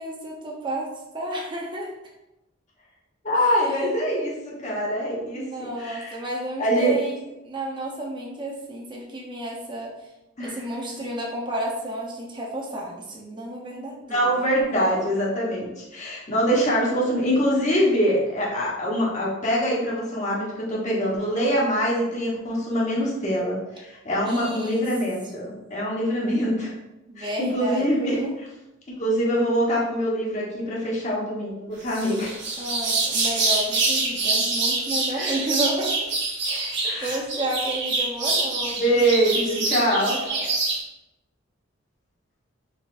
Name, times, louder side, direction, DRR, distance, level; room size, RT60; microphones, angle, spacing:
voice 1, 0.0-1.9 3.4-3.9 5.2-9.9 10.4-14.4 24.2-24.9 27.1-28.3 32.6-36.1 36.4-39.0 39.9-40.6, right 1 dB, 25° right, -2 dB, 0.7 m, -32 dB
voice 2, 3.2-6.1 6.6-7.0 10.4-10.5 14.1-26.7 27.2-28.2 29.0-32.3 35.1-35.3 36.8-37.2 38.8-40.1, equal, 35° left, -5 dB, 1.1 m, -24 dB
sound 1, 31.9-40.8, right 3 dB, 60° right, 0.9 m, -25 dB
4.0 x 3.2 x 2.4 m, 0.94 s
head